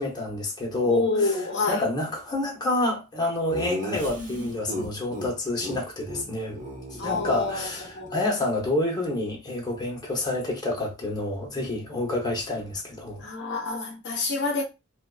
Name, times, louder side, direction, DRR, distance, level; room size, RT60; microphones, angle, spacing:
voice 1, 0.0-1.4 1.7-6.6 7.0-13.2, left 2 dB, 20° left, 0.7 m, -28 dB
voice 2, 0.9-1.8 4.1-4.5 7.0-7.7 7.9-8.3 13.2-14.6, left 3 dB, 50° left, 0.5 m, -27 dB
Laughter, 3.5-5.3 5.6-5.8 6.0-6.2 6.5-8.1, equal, 35° right, 0.9 m, -35 dB
2.5 x 2.2 x 2.3 m
head